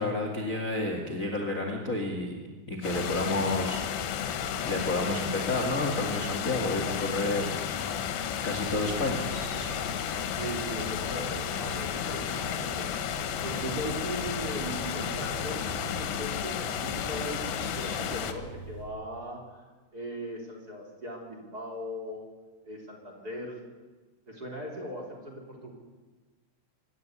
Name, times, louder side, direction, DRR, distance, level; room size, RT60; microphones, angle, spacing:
voice 1, 0.0-3.8 4.6-7.5 8.4-9.3, left 2 dB, 30° left, 1 dB, 1.4 m, -30 dB
sound 1, 2.8-18.3, left 8 dB, 75° left, 3.5 m, -33 dB
sound 2, 8.5-18.8, right 2 dB, 50° right, 6.7 m, -44 dB
voice 2, 10.4-13.0 13.4-19.6 19.9-22.2 22.6-23.6 24.3-25.7, right 1 dB, 20° right, -1 dB, 3.8 m, -39 dB
25.0 x 12.5 x 9.7 m, 1.3 s
omnidirectional pair, 5.4 m